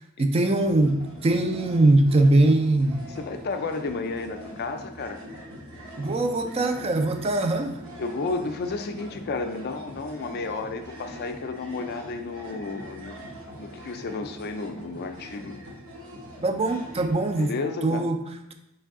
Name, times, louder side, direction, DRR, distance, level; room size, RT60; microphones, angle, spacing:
voice 1, 0.2-3.0 6.0-7.8 16.4-17.6 17.8-18.2, right 2 dB, 25° right, 7 dB, 0.3 m, -21 dB
sound 1, 0.5-17.5, equal, 65° right, 1.0 m, -43 dB
voice 2, 3.2-5.2 8.0-13.2 13.6-15.6 17.4-18.1, left 3 dB, 45° left, 7 dB, 0.4 m, -32 dB
4.5 x 3.3 x 3.5 m, 0.85 s
head